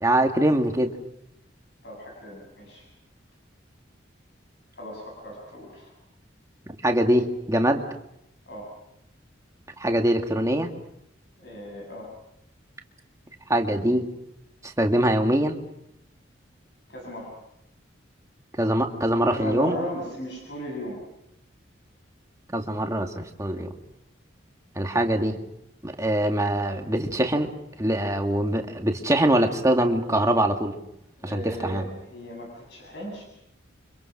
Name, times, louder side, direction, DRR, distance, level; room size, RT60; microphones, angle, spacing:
voice 1, 0.0-0.9 6.8-7.8 9.8-10.7 13.5-14.0 14.6-15.6 18.6-19.8 22.5-23.7 24.8-25.4 25.8-27.5 27.8-30.8 31.2-31.8, right 1 dB, 15° right, 3 dB, 2.2 m, -23 dB
voice 2, 1.8-2.8 4.8-5.9 8.5-8.7 11.4-12.1 16.9-17.3 19.3-21.0 31.2-33.2, equal, 60° left, 0 dB, 7.7 m, -36 dB
30.0 x 25.5 x 6.1 m, 0.79 s
head